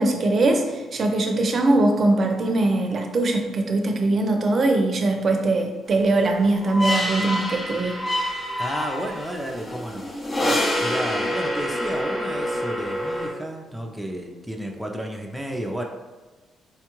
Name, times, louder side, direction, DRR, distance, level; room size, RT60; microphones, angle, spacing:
voice 1, 0.0-7.9, right 2 dB, 45° right, 3 dB, 0.5 m, -21 dB
sound 1, 6.1-13.3, equal, 30° left, 0.8 m, -27 dB
voice 2, 8.6-10.1 10.8-15.8, right 1 dB, 5° right, 0 dB, 0.5 m, -32 dB
4.5 x 2.3 x 3.0 m, 1.2 s
cardioid pair, 90°, 0 cm